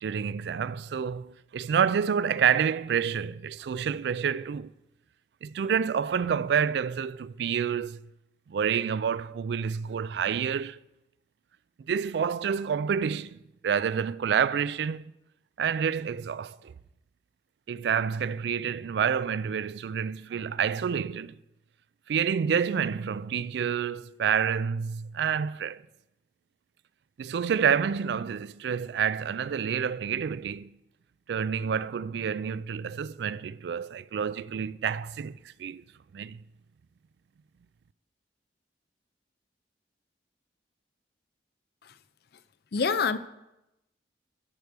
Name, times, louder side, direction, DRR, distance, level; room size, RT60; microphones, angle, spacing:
voice 1, 0.0-4.7 5.4-8.1 8.5-10.8 11.9-15.1 15.6-16.7 17.7-21.4 22.1-25.8 27.2-30.7 31.3-35.8 36.1-36.4, right 7 dB, 65° right, 0.3 m, -28 dB
voice 2, 42.7-43.2, left 5 dB, 60° left, 0.5 m, -26 dB
13.5 x 4.6 x 6.7 m
head